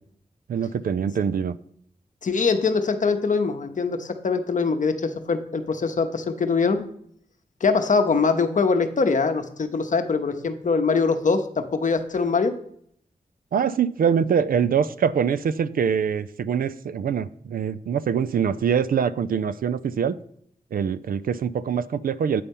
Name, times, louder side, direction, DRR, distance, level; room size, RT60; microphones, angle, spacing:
voice 1, 0.5-1.6 13.5-20.2 20.7-22.4, right 7 dB, 70° right, 15 dB, 0.4 m, -24 dB
voice 2, 2.2-6.8 7.6-12.5, left 4 dB, 55° left, 8 dB, 0.8 m, -23 dB
8.4 x 4.3 x 5.3 m, 0.67 s
cardioid pair, 65°, 15 cm